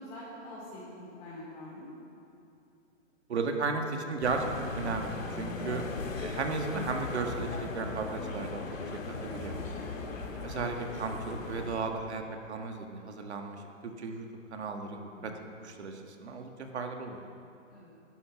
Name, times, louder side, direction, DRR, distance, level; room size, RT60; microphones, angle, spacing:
voice 1, 0.0-1.9 5.6-5.7 15.1-15.4 17.7-17.9, left 1 dB, 30° left, -9 dB, 4.6 m, -45 dB
voice 2, 3.3-5.8 6.2-8.9 9.2-9.6 10.4-12.2 12.5-14.3 14.5-15.3 15.6-17.3, right 4 dB, 55° right, 4 dB, 1.9 m, -35 dB
sound 1, 4.2-11.8, left 3 dB, 80° left, 2.5 m, -38 dB
17.0 x 11.5 x 5.9 m, 2.6 s
hypercardioid pair, 175°, 39 cm